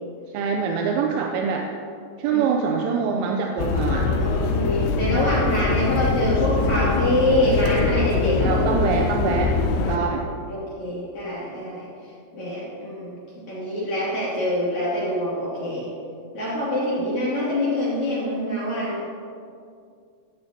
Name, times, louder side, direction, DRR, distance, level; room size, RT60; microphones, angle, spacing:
voice 1, 0.3-1.7 2.2-4.1 8.4-9.5 9.9-10.3, right 6 dB, 85° right, 2 dB, 3.2 m, -24 dB
sound 1, 3.6-10.0, left 4 dB, 80° left, 2.9 m, -23 dB
voice 2, 3.9-8.6 9.8-10.1 10.5-11.9 12.3-13.2 13.5-15.9 16.3-19.0, left 1 dB, 40° left, -8 dB, 3.5 m, -25 dB
16.5 x 14.5 x 2.9 m, 2.4 s
omnidirectional pair, 5.8 m